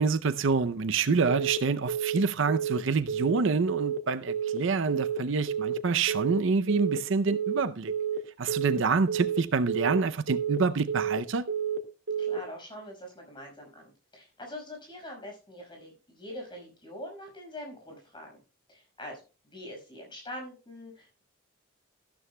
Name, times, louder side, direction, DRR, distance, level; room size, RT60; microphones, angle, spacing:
voice 1, 0.0-7.9 8.4-11.4, right 4 dB, 65° right, 0.6 m, -27 dB
Telephone, 1.3-1.6 1.9-2.2 2.5-2.8 3.1-3.4 3.7-4.0 4.3-4.6 4.9-5.2 5.5-5.8 6.1-6.4 6.7-7.0 7.3-7.6 7.9-8.2 8.5-8.8 9.1-9.4 9.7-10.0 10.3-10.6 10.9-11.2 11.5-11.8 12.1-12.4, right 8 dB, 80° right, 1.8 m, -30 dB
voice 2, 12.2-18.4 18.7-21.2, left 1 dB, 25° left, 5.5 m, -44 dB
14.0 x 12.5 x 2.2 m
head